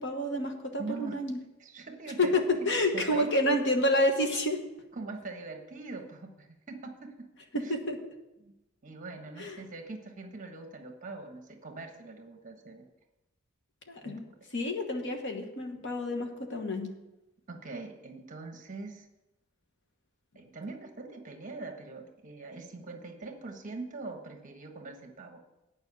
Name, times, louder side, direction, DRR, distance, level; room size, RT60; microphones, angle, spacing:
voice 1, 0.0-1.4 2.2-4.6 7.5-8.0 9.4-9.6 13.9-14.2 14.5-16.9, left 1 dB, 60° left, 5 dB, 1.3 m, -29 dB
voice 2, 0.8-1.2 1.6-2.7 2.9-3.3 4.9-7.3 7.6-7.7 8.4-8.5 8.8-12.8 14.0-14.3 17.5-19.1 20.3-25.4, right 3 dB, 40° right, 5 dB, 1.3 m, -42 dB
9.3 x 5.4 x 8.2 m, 0.96 s
head